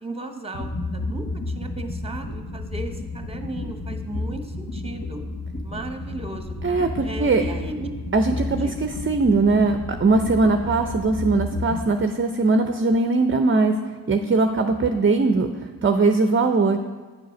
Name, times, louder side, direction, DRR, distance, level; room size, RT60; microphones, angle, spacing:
voice 1, 0.0-5.2 5.6-6.5 7.0-7.9 8.6-8.9 10.6-10.7, right 2 dB, 15° right, 6 dB, 1.1 m, -36 dB
sound 1, 0.5-11.8, left 2 dB, 40° left, 1.2 m, -32 dB
voice 2, 6.6-7.4 8.1-13.7 14.1-15.5 15.8-16.8, right 3 dB, 30° right, 6 dB, 0.6 m, -20 dB
8.9 x 4.7 x 6.0 m, 1.4 s
cardioid pair, 45°, 40 cm